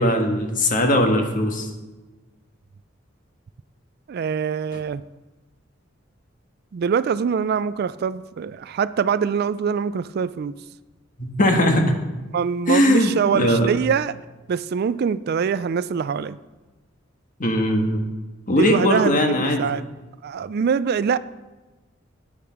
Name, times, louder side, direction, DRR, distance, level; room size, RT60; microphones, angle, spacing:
voice 1, 0.0-1.7 11.2-11.9 12.7-13.7 17.4-18.0 18.5-19.7, left 1 dB, 45° left, 4 dB, 1.5 m, -19 dB
voice 2, 4.1-5.0 6.7-10.6 12.3-14.2 14.5-16.4 18.5-19.8 20.2-21.2, right 6 dB, 55° right, 16 dB, 0.3 m, -24 dB
8.9 x 8.3 x 5.8 m, 1.2 s
head